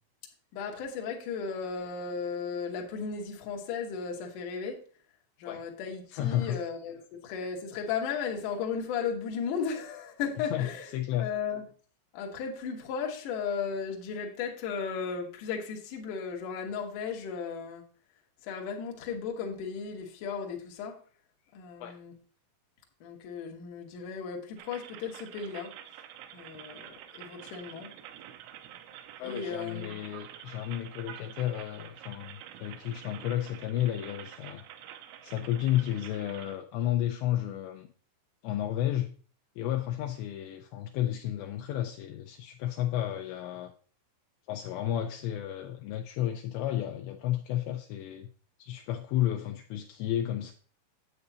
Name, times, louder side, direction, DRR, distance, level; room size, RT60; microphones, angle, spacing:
voice 1, 0.5-4.8 5.4-10.9 11.2-11.6 12.1-17.8 18.4-21.0 21.5-22.1 23.0-25.7 26.3-27.9 29.2-30.1, left 6 dB, 70° left, 1 dB, 2.0 m, -35 dB
voice 2, 6.1-6.6 10.5-10.7 10.9-11.3 21.8-22.0 29.2-34.6 35.2-37.9 38.4-39.1 39.6-43.7 44.5-48.3 48.6-50.5, left 12 dB, 90° left, 4 dB, 2.5 m, -32 dB
sound 1, 24.6-36.5, right 11 dB, 85° right, 3.2 m, -48 dB
9.5 x 8.1 x 2.8 m, 0.41 s
omnidirectional pair, 5.8 m